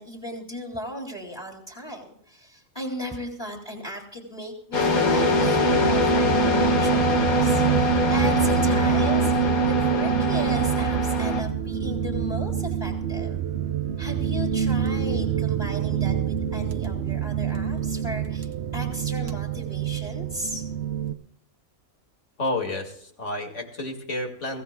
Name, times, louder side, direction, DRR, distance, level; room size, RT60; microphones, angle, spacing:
voice 1, 0.0-13.4 14.0-20.7, equal, 15° left, 0 dB, 3.1 m, -36 dB
sound 1, 4.7-11.4, right 1 dB, 85° left, 2.2 m, -22 dB
sound 2, 4.9-21.1, right 8 dB, 55° right, 1.0 m, -28 dB
voice 2, 22.4-24.6, left 2 dB, 55° left, 2 dB, 2.7 m, -30 dB
23.0 x 16.0 x 2.3 m, 0.65 s
omnidirectional pair, 1.5 m